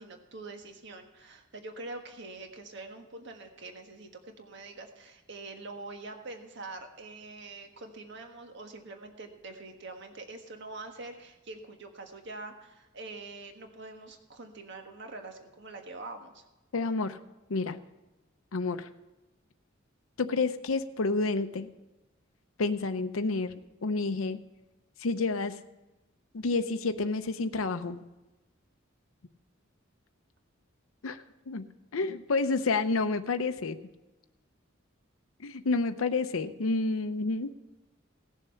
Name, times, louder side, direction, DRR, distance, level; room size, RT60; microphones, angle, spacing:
voice 1, 0.0-16.4, right 3 dB, 60° right, 5 dB, 1.4 m, -44 dB
voice 2, 16.7-17.2 17.5-17.8 18.5-18.9 20.2-21.7 22.6-23.5 23.8-24.4 25.0-25.6 26.3-28.0 31.0-31.7 31.9-33.8 35.4-37.5, left 3 dB, 85° left, 9 dB, 0.7 m, -29 dB
17.0 x 7.1 x 5.6 m, 1.1 s
head